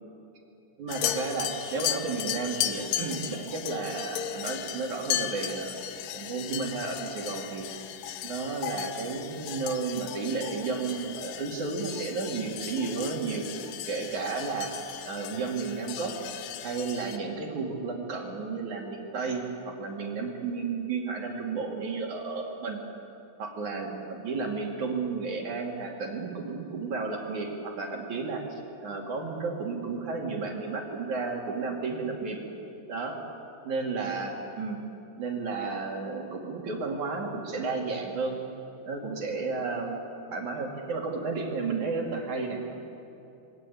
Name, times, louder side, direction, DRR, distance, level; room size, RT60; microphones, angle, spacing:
voice 1, 0.8-5.8 6.1-7.7 8.2-13.5 13.9-16.2 16.6-22.8 23.4-28.4 28.8-32.4 32.9-33.2 33.6-34.8 35.2-38.4 38.9-40.0 40.3-42.7, right 4 dB, 45° right, 0 dB, 3.6 m, -32 dB
sound 1, 0.9-17.2, left 11 dB, 75° left, 2.7 m, -36 dB
27.0 x 22.5 x 8.7 m, 2.9 s
omnidirectional pair, 5.6 m